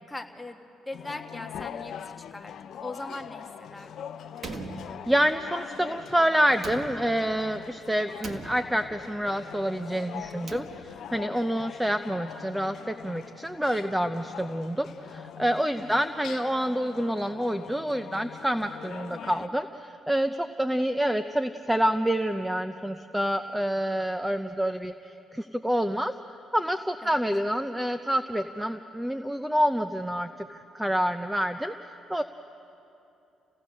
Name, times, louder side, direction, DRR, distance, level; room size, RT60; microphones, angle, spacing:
voice 1, 0.1-2.5 2.8-4.1 15.8-16.1 27.0-27.2, left 2 dB, 10° left, 4 dB, 1.5 m, -40 dB
sound 1, 0.9-19.5, left 9 dB, 65° left, 0.6 m, -43 dB
Slam, 4.4-5.5 6.5-7.5 8.2-9.1 10.2-11.2, right 3 dB, 45° right, 1.6 m, -42 dB
voice 2, 5.1-26.1 26.5-31.7 32.1-32.2, equal, 5° right, 9 dB, 0.6 m, -27 dB
29.5 x 17.0 x 6.4 m, 2.8 s
cardioid pair, 85°, 0 cm